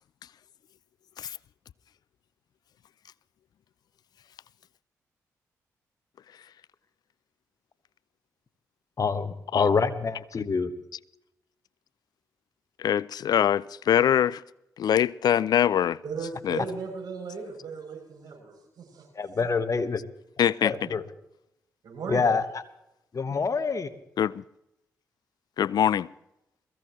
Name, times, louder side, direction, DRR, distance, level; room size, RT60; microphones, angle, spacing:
voice 1, 9.0-10.7 19.1-20.0 20.6-21.0 22.1-22.4 23.1-23.9, left 5 dB, 45° left, 1.3 m, -26 dB
voice 2, 12.8-14.4 14.8-16.6 20.4-20.9 24.2-24.4 25.6-26.1, left 9 dB, 65° left, 0.4 m, -24 dB
voice 3, 16.0-19.1 21.8-22.3, right 5 dB, 65° right, 7.3 m, -37 dB
22.0 x 15.5 x 3.1 m
hypercardioid pair, 40°, 7 cm